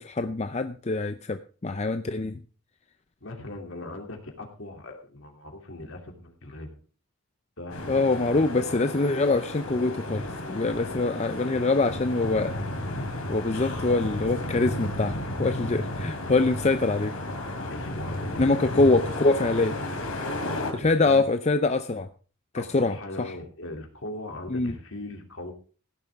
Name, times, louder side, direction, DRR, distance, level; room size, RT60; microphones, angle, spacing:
voice 1, 0.0-2.4 7.9-12.6 13.3-17.1 18.4-19.8 20.7-22.1 22.5-23.3 24.5-24.8, left 3 dB, 30° left, 9 dB, 0.5 m, -24 dB
voice 2, 3.2-6.7 7.6-8.7 10.7-11.0 11.5-11.7 17.6-18.8 20.8-21.3 22.6-25.5, left 1 dB, 65° left, 3 dB, 2.8 m, -40 dB
sound 1, 7.7-20.7, left 1 dB, 85° left, 3.3 m, -33 dB
16.5 x 11.0 x 3.5 m, 0.38 s
head